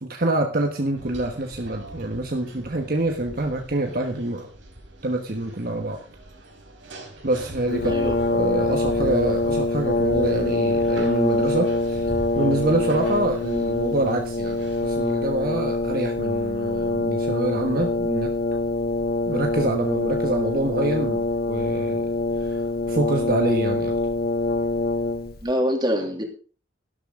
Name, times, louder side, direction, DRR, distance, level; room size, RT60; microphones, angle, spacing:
voice 1, 0.0-4.5 5.0-6.0 7.2-8.0 8.3-18.3 19.2-22.1 22.4-22.6 22.9-23.9, right 1 dB, 50° right, 3 dB, 1.3 m, -26 dB
sound 1, 0.9-15.1, right 1 dB, 85° right, 4.1 m, -41 dB
Brass instrument, 7.7-25.5, left 2 dB, 50° left, 1.0 m, -24 dB
voice 2, 7.8-8.1 25.4-26.2, equal, 25° right, 3 dB, 2.8 m, -24 dB
12.5 x 12.0 x 3.8 m, 0.38 s
head